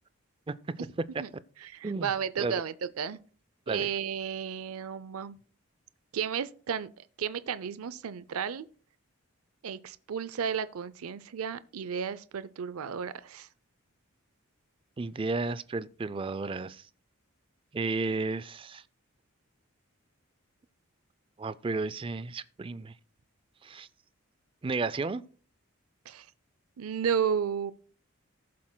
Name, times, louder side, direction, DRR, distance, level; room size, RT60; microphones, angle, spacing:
voice 1, 0.5-0.9 1.8-2.1 2.4-2.6 3.7-3.9 15.0-16.8 17.7-18.8 21.4-22.9 23.6-23.9 24.6-25.2, right 3 dB, 25° right, 0.3 m, -33 dB
voice 2, 1.6-3.2 3.7-5.4 6.1-8.7 9.6-13.5 26.1-26.3 26.8-27.7, right 7 dB, 85° right, 0.5 m, -33 dB
18.5 x 7.5 x 2.2 m
head